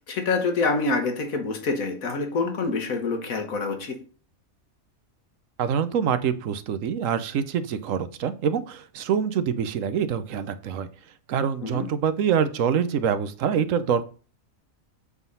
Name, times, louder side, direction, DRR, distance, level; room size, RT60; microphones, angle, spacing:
voice 1, 0.1-4.0 11.6-11.9, left 3 dB, 80° left, 1.7 m, -26 dB
voice 2, 5.6-10.9 11.3-14.1, right 7 dB, 75° right, 1.1 m, -25 dB
8.2 x 3.7 x 5.5 m
omnidirectional pair, 1.4 m